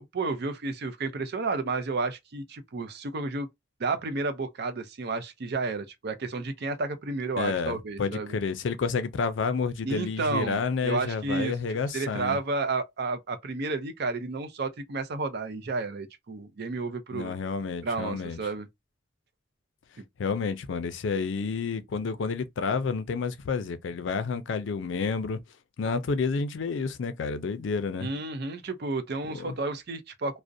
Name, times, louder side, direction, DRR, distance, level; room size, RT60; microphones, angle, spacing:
voice 1, 0.0-3.5 3.8-8.3 9.8-17.3 17.8-18.7 28.0-30.4, right 3 dB, 60° right, 0.5 m, -31 dB
voice 2, 7.4-12.4 17.1-18.4 20.2-25.4 25.8-28.1 29.3-29.5, left 5 dB, 70° left, 0.4 m, -30 dB
2.4 x 2.0 x 2.6 m
head